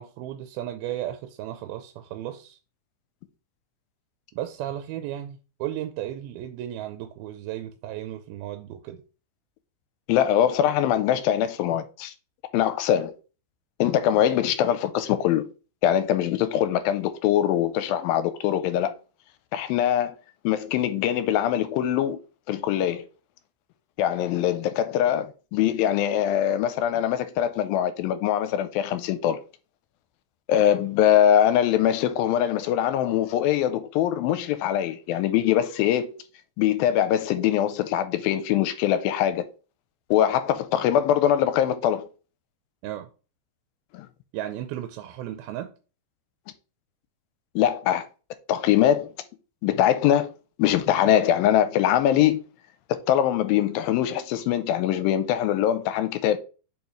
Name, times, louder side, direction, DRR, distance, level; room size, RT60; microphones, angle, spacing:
voice 1, 0.0-2.6 4.3-9.0 42.8-43.1 44.3-45.7, right 12 dB, 90° right, 2.5 m, -34 dB
voice 2, 10.1-12.1 12.5-13.1 13.8-15.5 15.8-18.9 19.5-20.2 20.4-22.2 22.5-23.1 24.0-29.4 30.5-36.1 36.6-39.4 40.1-42.1 43.9-44.1 47.6-48.1 48.5-49.1 49.6-50.3 50.6-52.4 52.9-56.4, left 11 dB, 85° left, 2.3 m, -22 dB
7.1 x 5.2 x 3.1 m
omnidirectional pair, 4.3 m